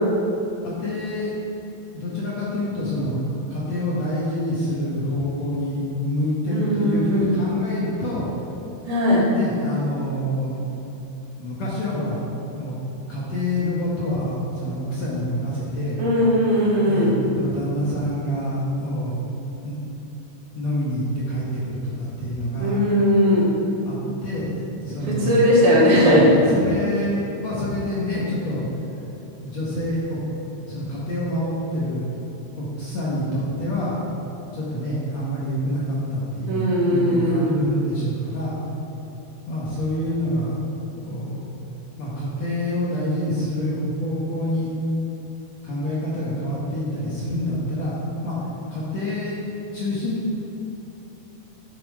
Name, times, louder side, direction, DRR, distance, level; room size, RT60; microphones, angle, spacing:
voice 1, 0.6-1.3 1.9-3.2 3.5-8.3 9.3-10.6 11.4-12.2 12.6-12.8 13.1-16.0 16.8-19.2 19.6-19.8 20.5-22.8 23.8-25.5 26.0-28.7 29.4-30.2 30.7-32.1 32.6-34.0 34.5-38.6 39.5-40.5 41.0-41.5 42.0-44.7 45.6-48.4 48.7-49.3 49.7-50.4, left 1 dB, 55° left, -7 dB, 2.3 m, -27 dB
voice 2, 6.5-7.4 8.9-9.2 16.0-17.1 22.6-23.5 25.1-26.3 36.5-37.4, equal, 65° right, -7 dB, 4.2 m, -18 dB
9.7 x 8.9 x 4.9 m, 2.9 s
omnidirectional pair, 4.7 m